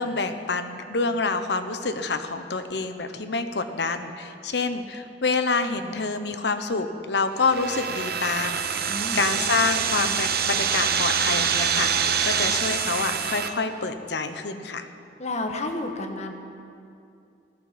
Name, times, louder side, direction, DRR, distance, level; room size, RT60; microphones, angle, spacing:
voice 1, 0.0-14.9, left 4 dB, 70° left, 8 dB, 1.0 m, -27 dB
sound 1, 7.4-13.5, right 7 dB, 65° right, 0.9 m, -25 dB
voice 2, 8.9-9.2 15.2-16.3, left 2 dB, 40° left, 4 dB, 1.5 m, -30 dB
16.0 x 11.5 x 7.5 m, 2.5 s
head